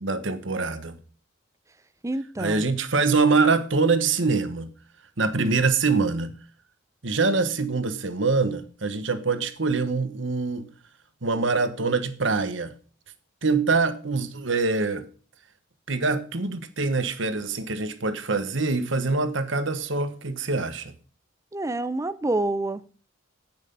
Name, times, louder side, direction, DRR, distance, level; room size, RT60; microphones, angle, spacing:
voice 1, 0.0-1.0 2.4-4.7 5.2-6.3 7.0-10.7 11.2-12.7 13.4-15.1 15.9-20.9, right 4 dB, 70° right, 1.3 m, -24 dB
voice 2, 2.0-2.6 21.5-22.8, right 2 dB, 15° right, 0.5 m, -27 dB
9.5 x 9.0 x 5.4 m
head